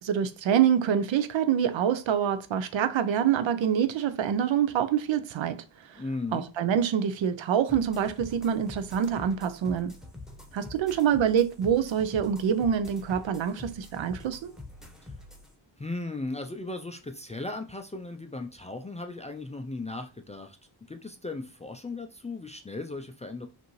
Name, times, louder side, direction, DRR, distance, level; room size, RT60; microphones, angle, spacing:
voice 1, 0.0-5.6 5.9-6.0 6.3-10.0 10.5-14.6, right 8 dB, 70° right, 0.6 m, -26 dB
voice 2, 6.0-6.5 15.0-15.1 15.8-20.6 20.9-23.5, left 2 dB, 15° left, 0.3 m, -37 dB
sound 1, 7.7-15.5, left 2 dB, ahead, 0.9 m, -45 dB
5.2 x 2.6 x 3.1 m
cardioid pair, 100°, 48 cm